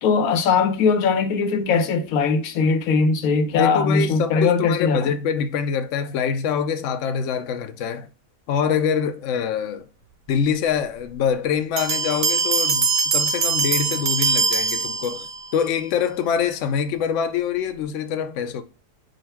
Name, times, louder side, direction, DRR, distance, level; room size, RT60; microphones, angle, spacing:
voice 1, 0.0-5.0, left 5 dB, 90° left, 1.1 m, -20 dB
voice 2, 3.5-8.1 8.5-9.9 10.3-15.3 15.5-18.6, left 7 dB, 70° left, 0.8 m, -24 dB
sound 1, 11.8-15.5, right 5 dB, 50° right, 0.6 m, -22 dB
3.8 x 2.4 x 4.4 m
omnidirectional pair, 1.5 m